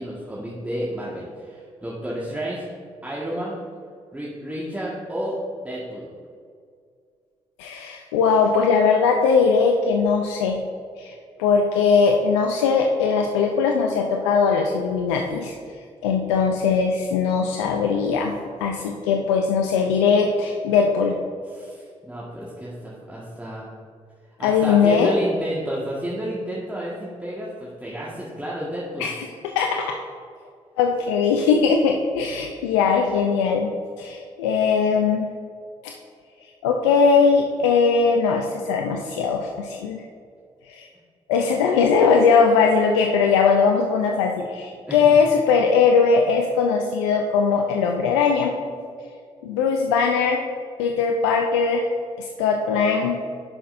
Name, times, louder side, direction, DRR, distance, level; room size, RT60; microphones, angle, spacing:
voice 1, 0.0-2.7 3.0-3.6 4.1-6.1 21.5-23.7 24.4-29.0 44.9-45.1, equal, 10° right, -6 dB, 1.6 m, -31 dB
voice 2, 7.6-10.6 11.0-11.1 11.4-15.6 16.0-18.4 18.6-21.2 24.4-25.1 29.0-29.9 30.8-35.3 35.8-35.9 36.6-40.0 40.7-40.9 41.3-48.6 49.4-50.4 50.8-51.9 52.2-53.2, left 5 dB, 90° left, 2 dB, 0.4 m, -20 dB
10.5 x 5.8 x 2.6 m, 2.2 s
hypercardioid pair, 45°, 14 cm